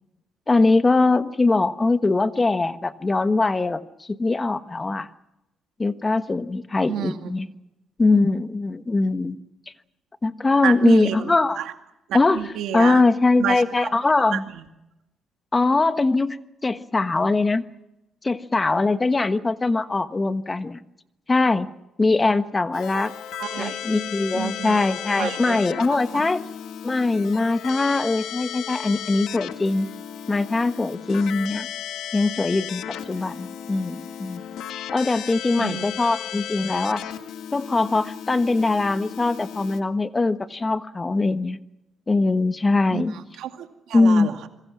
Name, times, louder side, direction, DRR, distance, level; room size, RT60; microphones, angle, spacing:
voice 1, 0.5-5.1 5.8-7.5 8.0-9.4 10.2-11.6 12.1-12.4 12.7-14.4 15.5-16.4 16.6-17.6 18.2-20.8 21.3-21.7 22.0-23.1 23.6-26.4 26.8-29.9 30.3-31.7 32.1-32.8 33.1-34.4 34.9-37.0 37.5-41.6 42.1-43.1 43.9-44.3, left 3 dB, 25° left, 11 dB, 1.3 m, -21 dB
voice 2, 6.9-7.3 10.6-11.7 12.1-13.1 13.4-14.0 14.3-14.6 22.9-23.8 24.3-24.8 25.2-25.6 25.9-26.3 35.6-35.9 42.9-44.5, right 10 dB, 85° right, 6 dB, 2.3 m, -30 dB
Keyboard (musical), 22.7-39.8, left 9 dB, 80° left, 1.5 m, -35 dB
27.0 x 22.5 x 6.2 m, 0.92 s
cardioid pair, 90°, 0 cm